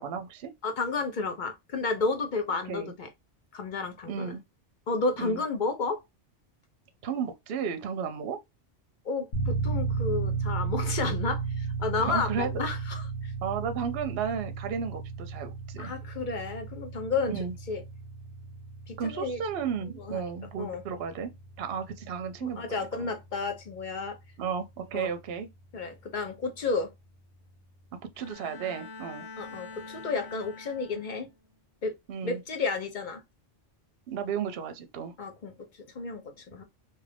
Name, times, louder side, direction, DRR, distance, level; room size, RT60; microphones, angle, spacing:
voice 1, 0.0-0.5 2.7-2.9 4.1-4.4 5.2-5.4 7.0-8.4 12.0-12.5 13.4-15.9 17.3-17.5 19.0-21.3 21.6-23.1 24.4-25.5 28.2-29.3 32.1-32.4 34.1-35.1, right 7 dB, 65° right, 0.8 m, -33 dB
voice 2, 0.6-3.1 3.5-4.4 4.9-6.0 9.0-13.3 15.8-17.3 17.7-17.8 18.9-19.4 20.0-20.3 20.6-20.8 22.4-24.2 24.9-25.1 25.7-26.9 29.4-31.3 31.8-31.9 32.2-33.2 35.2-35.5 35.9-36.6, left 4 dB, 50° left, 0.7 m, -32 dB
sound 1, 9.3-26.1, right 4 dB, 75° left, 1.2 m, -35 dB
Bowed string instrument, 28.1-31.3, left 4 dB, 20° left, 0.9 m, -45 dB
2.7 x 2.5 x 3.3 m
omnidirectional pair, 1.2 m